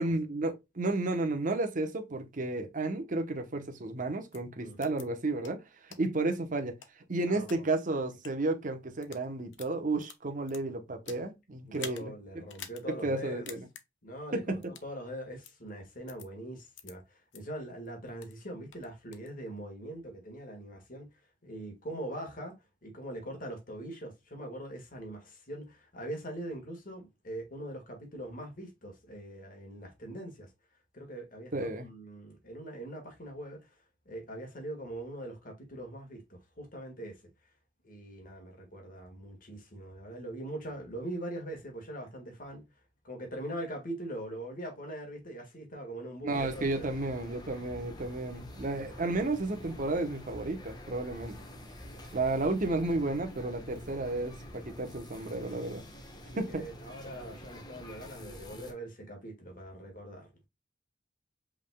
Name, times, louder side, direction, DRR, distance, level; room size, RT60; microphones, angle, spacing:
voice 1, 0.0-5.6 5.9-6.8 7.1-12.1 12.9-13.7 14.3-14.6 31.5-31.9 46.2-51.4 52.1-55.8 56.4-56.7, right 2 dB, 45° right, 0.9 m, -32 dB
sound 1, 4.3-4.4 4.8-5.0 5.4-5.5 5.9-6.0 6.6-7.6 8.1-8.3 8.9-9.2 9.5-11.3 11.7-12.0 12.5-12.8 13.1-13.2 13.5-13.8 14.6-14.9 15.4-15.5 16.1-16.3 16.8-16.9 17.3-17.4 17.8-18.4 18.7-19.3, left 8 dB, 90° left, 0.8 m, -47 dB
voice 2, 4.6-4.9 7.3-7.5 11.7-13.5 14.0-21.1 21.4-22.6 22.8-30.5 30.9-33.8 34.0-37.2 37.8-42.6 43.0-46.9 51.1-51.5 51.9-52.3 56.2-60.5, right 1 dB, 50° left, 1.6 m, -42 dB
sound 2, 46.3-58.7, equal, 25° left, 1.1 m, -47 dB
5.4 x 3.5 x 2.2 m
head